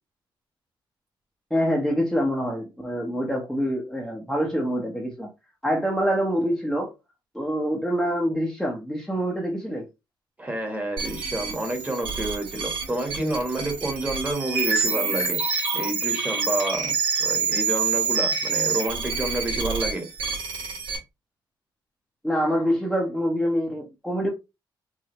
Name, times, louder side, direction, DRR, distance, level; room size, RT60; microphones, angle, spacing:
voice 1, 1.5-5.3 5.6-6.9 7.3-9.9 22.2-24.3, equal, ahead, 0.9 m, -25 dB
voice 2, 10.4-15.4 15.7-16.9 17.2-20.1, right 1 dB, 20° right, 1.5 m, -29 dB
sound 1, 11.0-21.0, right 5 dB, 75° right, 2.4 m, -27 dB
4.8 x 2.7 x 3.0 m
cardioid pair, 120°, 9 cm